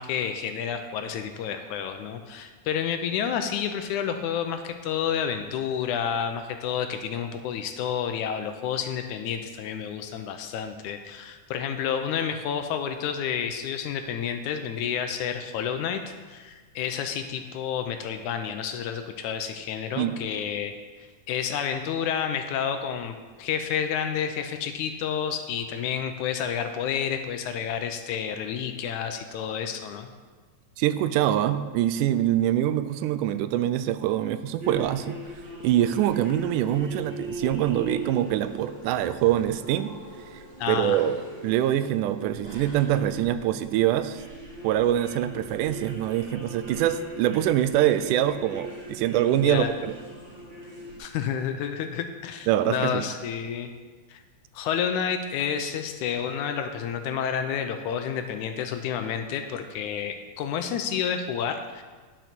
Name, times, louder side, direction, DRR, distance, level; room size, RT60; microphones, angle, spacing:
voice 1, 0.0-16.0 16.3-20.7 21.3-30.1 40.6-41.0 49.4-49.7 51.0-53.7 54.1-54.2 54.5-61.8, left 8 dB, 75° left, 7 dB, 2.0 m, -30 dB
voice 2, 30.8-35.2 35.6-39.9 40.3-44.2 44.6-49.9 52.5-53.0, right 12 dB, 85° right, 12 dB, 2.1 m, -24 dB
sound 1, 34.6-51.0, equal, 30° right, 1.6 m, -41 dB
10.0 x 6.7 x 6.0 m, 1.4 s
omnidirectional pair, 3.7 m